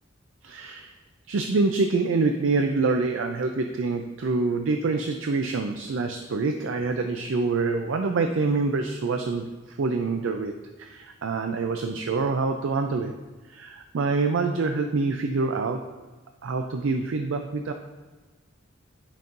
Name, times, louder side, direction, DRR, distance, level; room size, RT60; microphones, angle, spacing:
voice 1, 0.4-0.9 1.3-13.1 13.5-15.8 16.4-17.7, right 3 dB, 70° right, 5 dB, 0.4 m, -26 dB
10.0 x 5.3 x 2.6 m, 1.3 s
head